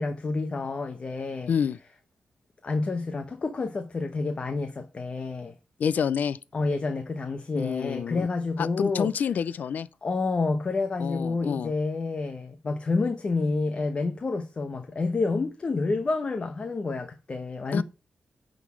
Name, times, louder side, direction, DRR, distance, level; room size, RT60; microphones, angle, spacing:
voice 1, 0.0-1.5 2.6-5.5 6.5-9.1 10.0-17.8, left 3 dB, 40° left, 0.9 m, -29 dB
voice 2, 1.5-1.8 5.8-6.4 7.6-8.3 8.6-9.9 11.0-11.7 17.7-17.8, left 7 dB, 70° left, 0.4 m, -28 dB
9.1 x 4.0 x 6.2 m
wide cardioid pair, 105°, 3 cm